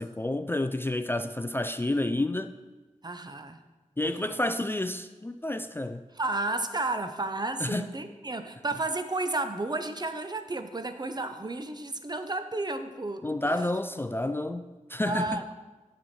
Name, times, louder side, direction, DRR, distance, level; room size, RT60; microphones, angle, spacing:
voice 1, 0.0-2.6 4.0-6.0 7.6-7.8 13.2-14.6 14.9-15.4, left 1 dB, 15° left, 0.3 m, -29 dB
voice 2, 3.0-3.6 4.3-4.4 6.1-13.6 15.0-15.5, right 2 dB, 30° right, 0.6 m, -32 dB
9.3 x 6.2 x 4.3 m
wide cardioid pair, 65°, 14 cm